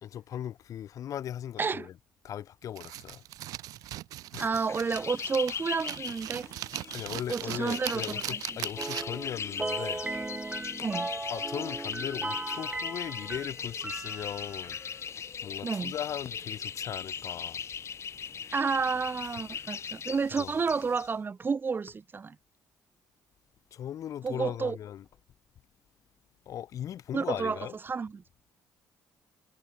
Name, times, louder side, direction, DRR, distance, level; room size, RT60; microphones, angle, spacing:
voice 1, 0.0-1.9 2.2-3.2 4.3-4.5 6.9-10.1 11.3-14.8 15.4-17.6 20.4-20.5 23.7-25.0 26.4-27.7, left 10 dB, 65° left, 1.6 m, -38 dB
voice 2, 1.6-1.9 4.4-6.5 7.3-8.6 10.8-11.1 15.6-15.9 18.5-22.4 24.2-24.8 27.1-28.2, right 5 dB, 35° right, 1.6 m, -31 dB
sound 1, 2.8-9.3, right 15 dB, 80° right, 0.7 m, -39 dB
sound 2, 4.5-21.1, left 7 dB, 50° left, 3.5 m, -39 dB
sound 3, 8.8-14.8, right 3 dB, 20° right, 1.6 m, -37 dB
supercardioid pair, 75°, 6 cm